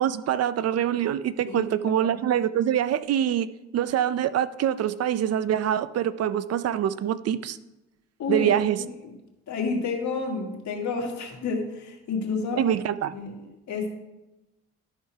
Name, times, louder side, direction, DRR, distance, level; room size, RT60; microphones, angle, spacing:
voice 1, 0.0-3.5 3.7-7.6 8.3-8.8 12.6-13.1, right 10 dB, 55° right, 14 dB, 0.5 m, -25 dB
voice 2, 1.5-2.1 8.2-8.5 9.0-9.1 9.5-12.8 13.1-13.4 13.7-13.9, left 4 dB, 70° left, 1 dB, 1.9 m, -30 dB
12.0 x 4.3 x 4.7 m, 0.99 s
cardioid pair, 90°, 30 cm